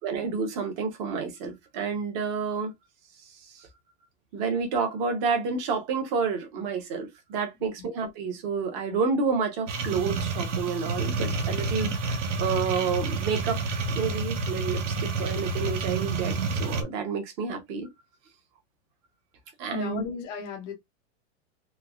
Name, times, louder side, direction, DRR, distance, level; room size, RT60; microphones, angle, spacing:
voice 1, 0.0-2.7 3.4-3.7 4.3-17.9 19.6-20.0, right 5 dB, 25° right, 0.7 m, -30 dB
sound 1, 9.7-16.8, right 3 dB, 85° right, 1.1 m, -29 dB
voice 2, 19.7-20.7, left 6 dB, 15° left, 0.4 m, -35 dB
3.2 x 3.1 x 2.3 m
supercardioid pair, 175°, 36 cm